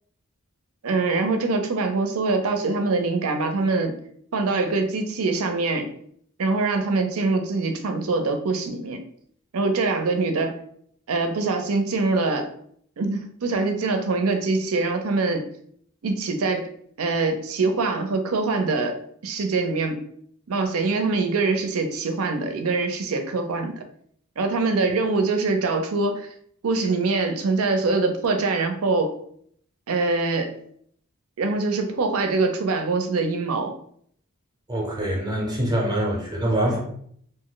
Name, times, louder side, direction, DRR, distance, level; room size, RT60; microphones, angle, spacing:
voice 1, 0.8-4.0 4.3-5.9 6.4-9.0 9.5-10.6 11.1-12.5 13.0-15.5 16.0-16.7 17.0-18.9 19.2-20.0 20.5-23.8 24.4-26.3 26.6-29.1 29.9-30.5 31.4-33.7, right 3 dB, 80° right, 6 dB, 0.5 m, -24 dB
voice 2, 34.7-36.8, right 1 dB, 20° right, -2 dB, 0.6 m, -24 dB
2.6 x 2.1 x 3.8 m, 0.64 s
head